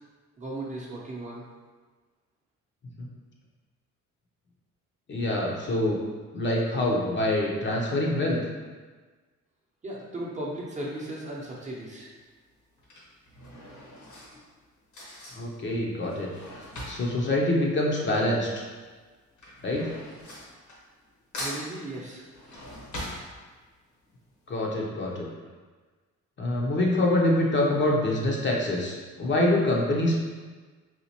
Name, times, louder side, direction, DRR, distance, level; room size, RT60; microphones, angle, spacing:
voice 1, 0.4-1.4 9.8-12.1 21.4-22.3, right 1 dB, 25° right, -4 dB, 0.7 m, -36 dB
voice 2, 5.1-6.0 6.3-8.4 15.3-16.3 16.6-18.6 19.6-19.9 24.5-25.3 26.4-30.2, left 1 dB, 40° left, -2 dB, 0.7 m, -25 dB
Drawer open or close / Cutlery silverware, 11.3-11.7 12.6-18.5 18.7-21.1 21.3-23.9 24.3-24.4 24.6-24.7, left 1 dB, 70° left, 1.2 m, -41 dB
4.1 x 2.4 x 2.8 m, 1.4 s
cardioid pair, 90°, 30 cm